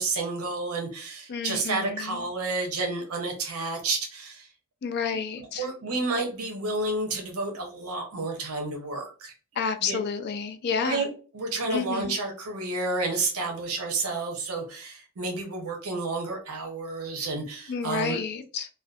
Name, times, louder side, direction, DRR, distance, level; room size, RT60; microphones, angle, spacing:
voice 1, 0.0-4.5 5.1-9.3 9.8-10.0 10.8-18.2, right 3 dB, 80° right, 0.6 m, -30 dB
voice 2, 1.3-2.2 4.8-5.6 9.6-11.0 11.7-12.1 17.7-18.7, left 6 dB, 50° left, 0.3 m, -30 dB
2.6 x 2.1 x 2.3 m
head